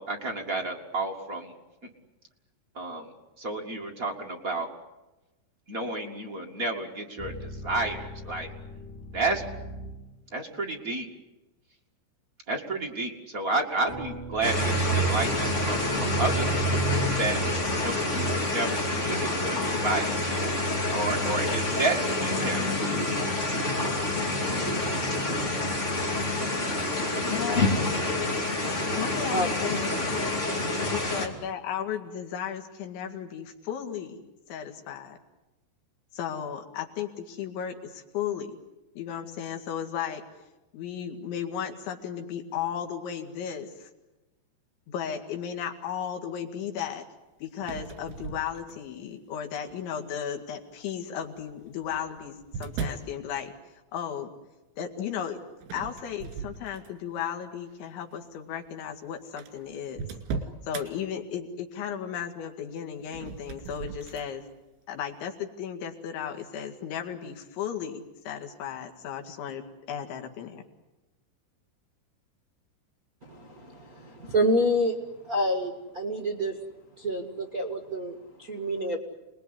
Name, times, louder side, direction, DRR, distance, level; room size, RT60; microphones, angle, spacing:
voice 1, 0.0-1.5 2.7-3.1 3.4-4.7 5.7-8.5 9.1-9.4 10.3-11.1 12.5-16.6 17.0-17.5 17.8-20.4 20.9-22.9, right 2 dB, 45° right, 1 dB, 1.1 m, -31 dB
sound 1, 7.2-10.3 13.9-18.5, equal, 50° left, 3.8 m, -41 dB
sound 2, 14.4-31.3, left 1 dB, 20° left, 2.3 m, -27 dB
voice 2, 27.3-27.8 29.0-30.3 30.9-34.2 34.5-35.2 36.1-38.5 39.0-40.2 40.7-43.9 44.9-47.1 47.4-54.3 54.8-55.4 55.7-60.1 60.6-64.5 64.9-69.6 69.9-70.6, left 8 dB, 80° left, 3 dB, 4.5 m, -35 dB
voice 3, 30.5-30.9 73.2-75.0 75.2-76.6 77.0-79.0, equal, 70° right, 4 dB, 0.8 m, -28 dB
sound 3, 47.6-49.0 49.7-50.1 51.2-53.1 55.6-57.2 57.6-57.9 58.7-58.8 58.9-59.0 59.4-60.9 63.0-64.3, right 5 dB, 85° right, 4.8 m, -38 dB
29.0 x 20.5 x 9.8 m, 1.0 s
omnidirectional pair, 5.3 m